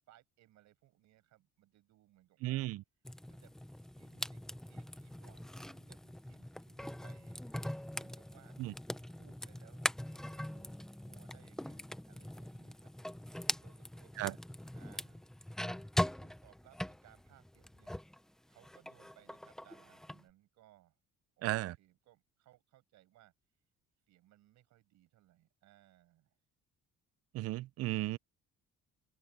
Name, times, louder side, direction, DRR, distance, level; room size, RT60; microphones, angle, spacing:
voice 1, 0.1-2.7 3.3-7.4 8.0-12.9 13.6-14.4 14.7-15.2 15.6-17.9 18.5-21.0 21.4-23.3 24.1-26.4, right 15 dB, 75° right, 5.6 m, -66 dB
voice 2, 2.4-2.8 8.6-8.7 14.2-14.3 21.4-21.8 27.3-28.2, right 17 dB, 55° right, 0.4 m, -35 dB
sound 1, 3.0-18.2 18.5-20.2, left 1 dB, ahead, 0.4 m, -42 dB
cardioid pair, 175°, 29 cm